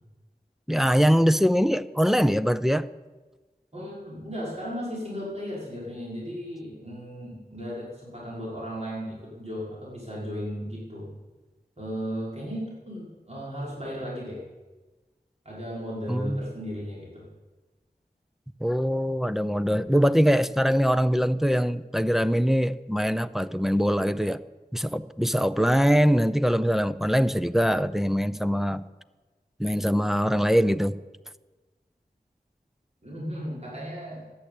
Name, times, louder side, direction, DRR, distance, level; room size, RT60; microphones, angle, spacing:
voice 1, 0.7-2.9 16.1-16.5 18.6-24.4 24.7-28.8 29.6-31.0, equal, ahead, 12 dB, 0.6 m, -23 dB
voice 2, 3.7-11.1 11.8-14.4 15.4-17.3 33.0-34.2, equal, 40° right, -6 dB, 5.6 m, -35 dB
13.5 x 10.0 x 8.6 m, 1.2 s
wide cardioid pair, 50°, 16 cm